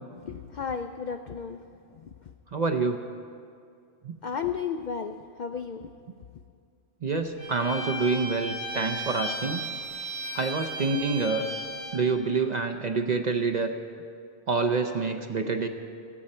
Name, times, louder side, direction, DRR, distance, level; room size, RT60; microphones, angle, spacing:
voice 1, 0.2-1.6 4.2-5.9, left 6 dB, 70° left, 7 dB, 0.4 m, -33 dB
voice 2, 2.5-3.0 4.0-4.1 7.0-9.7 10.3-11.5 11.9-13.7 14.5-15.7, right 4 dB, 45° right, 6 dB, 0.6 m, -27 dB
Bowed string instrument, 7.4-12.0, right 1 dB, 65° right, 4.6 m, -35 dB
17.0 x 13.5 x 4.3 m, 2.3 s
omnidirectional pair, 1.3 m